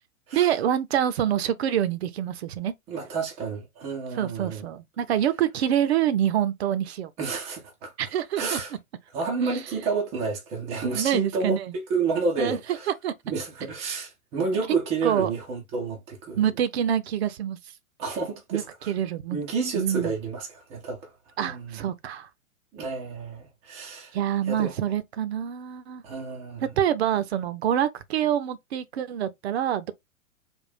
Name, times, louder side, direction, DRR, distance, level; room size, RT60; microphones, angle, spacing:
voice 1, 0.3-2.7 4.2-7.1 8.0-8.6 10.9-11.7 12.4-12.6 12.9-13.1 15.0-15.3 16.4-17.6 18.5-19.4 19.7-20.1 21.4-22.3 24.1-26.0 26.8-29.9, right 10 dB, 50° right, 0.6 m, -26 dB
voice 2, 2.9-4.6 7.2-7.9 8.4-8.7 9.1-12.9 13.2-16.4 18.0-18.9 19.3-21.1 21.4-21.8 22.7-24.2 24.5-24.7 26.0-26.7, right 4 dB, 10° right, 0.3 m, -30 dB
3.6 x 2.1 x 4.1 m
figure-of-eight pair, 110°, 42 cm